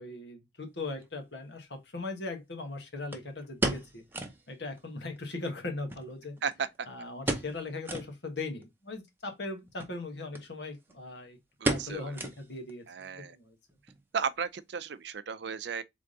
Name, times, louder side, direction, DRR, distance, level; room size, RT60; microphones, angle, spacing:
voice 1, 0.0-4.0 4.5-6.4 6.9-11.4 11.7-12.9 13.1-13.6, left 2 dB, 70° left, 1.4 m, -39 dB
sound 1, 1.0-1.1 3.1-4.5 4.8-4.9 5.2-5.3 5.9-6.8 7.2-7.6 7.8-8.1 8.6-8.7 9.7-9.9 10.3-10.5 10.7-11.1 11.6-12.7 13.0-13.1 13.7-14.0 14.3-14.4, right 2 dB, 10° right, 0.7 m, -33 dB
voice 2, 11.6-12.1 12.9-13.4 14.1-15.8, right 6 dB, 65° right, 0.5 m, -34 dB
3.7 x 3.5 x 3.7 m
head